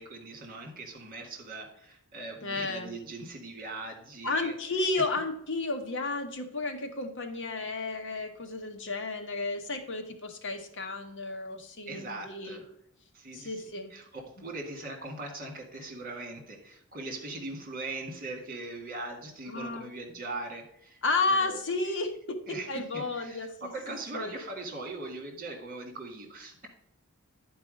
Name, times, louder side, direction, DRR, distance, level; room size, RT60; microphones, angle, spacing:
voice 1, 0.0-4.6 11.9-12.7 13.1-13.6 13.9-21.0 21.3-21.6 22.5-22.7 22.9-26.7, right 2 dB, 40° right, 3 dB, 2.0 m, -40 dB
voice 2, 2.4-2.9 4.2-12.6 13.3-13.9 19.5-19.9 21.0-23.7 24.1-24.3, left 3 dB, 55° left, 5 dB, 1.2 m, -32 dB
10.5 x 4.6 x 5.1 m, 0.70 s
head